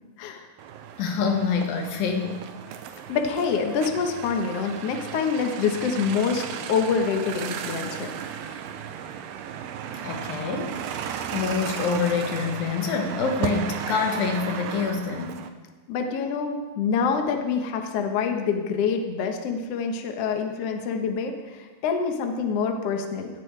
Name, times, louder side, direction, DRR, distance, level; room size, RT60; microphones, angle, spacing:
sound 1, 0.6-15.5, right 8 dB, 80° right, 2.1 m, -35 dB
voice 1, 1.0-2.4 10.0-15.4, left 5 dB, 65° left, 3 dB, 2.8 m, -26 dB
voice 2, 3.1-8.1 15.9-23.3, left 5 dB, 90° left, 4 dB, 1.3 m, -26 dB
18.5 x 14.0 x 3.4 m, 1.3 s
omnidirectional pair, 4.8 m